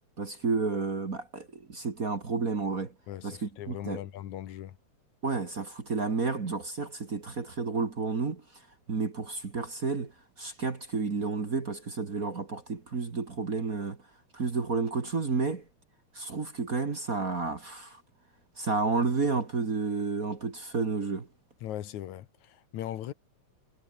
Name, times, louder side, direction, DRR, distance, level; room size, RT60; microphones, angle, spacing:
voice 1, 0.2-2.9 3.2-4.0 5.2-8.4 8.9-10.1 10.4-14.0 14.3-15.6 16.1-18.0 18.6-21.3, right 4 dB, 35° right, 1.9 m, -31 dB
voice 2, 3.1-4.8 21.6-23.1, left 12 dB, 75° left, 2.6 m, -39 dB
omnidirectional pair, 3.4 m